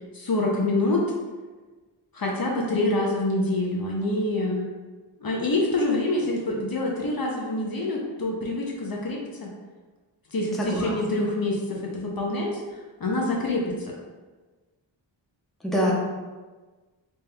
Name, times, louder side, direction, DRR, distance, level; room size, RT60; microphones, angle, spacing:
voice 1, 0.1-1.0 2.1-4.7 5.2-9.5 10.3-12.6 13.0-13.9, left 2 dB, 50° left, -2 dB, 0.6 m, -26 dB
voice 2, 10.6-11.0 15.6-15.9, equal, ahead, -5 dB, 0.7 m, -24 dB
4.1 x 3.4 x 2.2 m, 1.3 s
wide cardioid pair, 85°, 46 cm